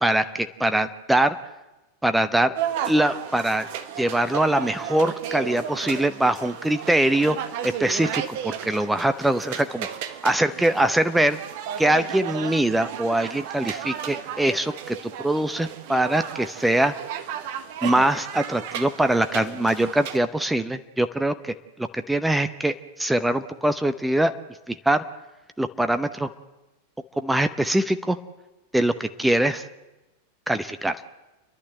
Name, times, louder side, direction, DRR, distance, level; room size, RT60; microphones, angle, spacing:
voice 1, 0.0-1.4 2.0-2.5 2.9-3.7 4.0-7.4 7.6-9.9 10.2-11.4 11.8-16.9 17.8-24.3 24.7-25.0 25.6-26.3 27.2-28.2 28.7-29.7 30.5-31.0, right 1 dB, 5° right, 10 dB, 0.7 m, -23 dB
sound 1, 2.6-20.2, right 9 dB, 50° right, 1.2 m, -34 dB
29.5 x 11.5 x 7.7 m, 1.1 s
figure-of-eight pair, 90°, 0 cm